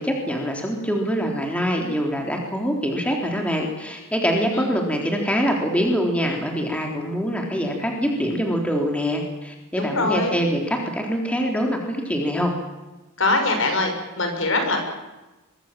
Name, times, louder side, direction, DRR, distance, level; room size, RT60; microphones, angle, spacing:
voice 1, 0.0-12.5, equal, 5° left, 1 dB, 3.7 m, -24 dB
voice 2, 9.8-10.3 13.2-14.8, left 2 dB, 60° left, 4 dB, 6.6 m, -23 dB
23.5 x 23.5 x 7.6 m, 1.1 s
head